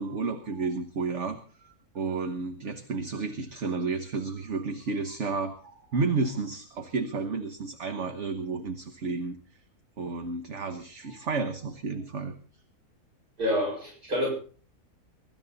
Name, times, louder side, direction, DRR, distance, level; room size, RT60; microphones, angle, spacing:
voice 1, 0.0-9.4 10.0-12.4, right 4 dB, 50° right, 7 dB, 1.5 m, -32 dB
voice 2, 13.4-14.3, equal, 75° right, -2 dB, 7.4 m, -27 dB
23.5 x 12.5 x 4.1 m, 0.40 s
omnidirectional pair, 1.6 m